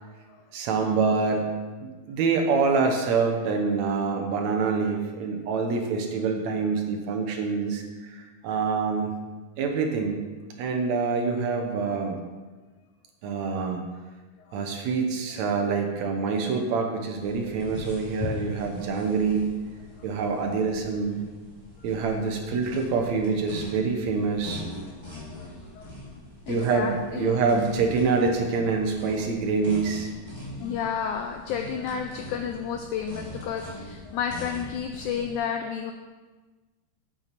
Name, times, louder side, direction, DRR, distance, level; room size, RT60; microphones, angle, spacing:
voice 1, 0.5-9.1 9.6-10.2 10.6-12.2 13.2-13.8 14.5-19.6 20.0-21.2 21.8-24.6 26.5-30.1, right 4 dB, 70° right, 2 dB, 1.8 m, -26 dB
sound 1, 17.1-35.4, left 2 dB, 10° left, 2.0 m, -41 dB
voice 2, 26.5-27.4 30.6-35.9, left 7 dB, 85° left, 5 dB, 1.7 m, -31 dB
9.0 x 8.5 x 4.1 m, 1.3 s
omnidirectional pair, 4.1 m